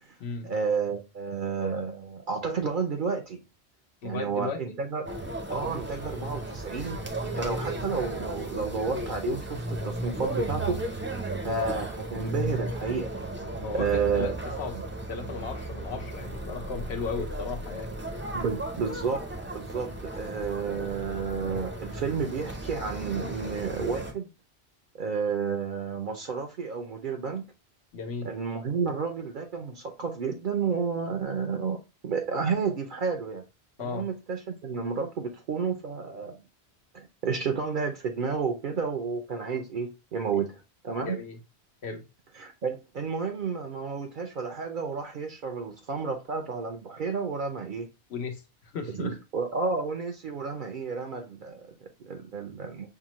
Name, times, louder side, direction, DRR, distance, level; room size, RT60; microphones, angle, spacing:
voice 1, 0.4-3.4 4.0-5.1 5.5-11.1 11.4-13.1 13.7-14.3 14.7-14.8 18.3-19.3 19.5-24.3 25.0-27.5 28.2-33.4 33.8-36.4 36.9-41.2 42.4-47.9 48.9-52.9, right 5 dB, 60° right, 0.7 m, -31 dB
voice 2, 4.0-4.8 13.6-14.7 15.1-17.9 27.9-28.3 33.8-34.1 41.0-41.4 41.8-42.0 48.1-49.2, left 4 dB, 80° left, 1.1 m, -35 dB
sound 1, 5.1-24.1, right 1 dB, 15° right, 0.5 m, -35 dB
5.8 x 2.1 x 2.9 m
omnidirectional pair, 1.1 m